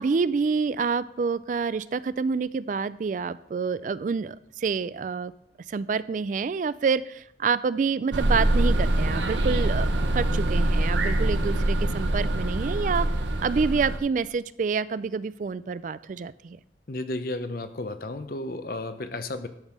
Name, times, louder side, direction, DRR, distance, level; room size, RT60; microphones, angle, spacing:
voice 1, 0.0-5.3 5.7-9.9 10.1-13.1 13.4-16.6, right 5 dB, 45° right, 17 dB, 0.3 m, -27 dB
sound 1, 8.1-14.0, right 1 dB, 90° right, 1.0 m, -24 dB
voice 2, 16.9-19.5, left 2 dB, 55° left, 10 dB, 0.8 m, -33 dB
12.0 x 5.4 x 6.1 m, 0.76 s
head